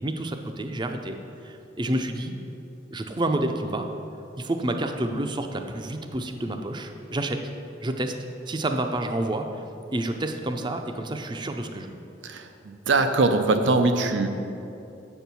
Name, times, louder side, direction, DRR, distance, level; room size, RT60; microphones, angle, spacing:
voice 1, 0.0-1.2 1.4-2.3 2.9-3.9 4.4-7.4 7.8-8.1 8.5-9.5 9.9-12.0, right 1 dB, 25° right, 6 dB, 0.5 m, -29 dB
voice 2, 12.9-14.3, right 3 dB, 85° right, 7 dB, 0.6 m, -21 dB
7.8 x 4.5 x 6.8 m, 2.8 s
head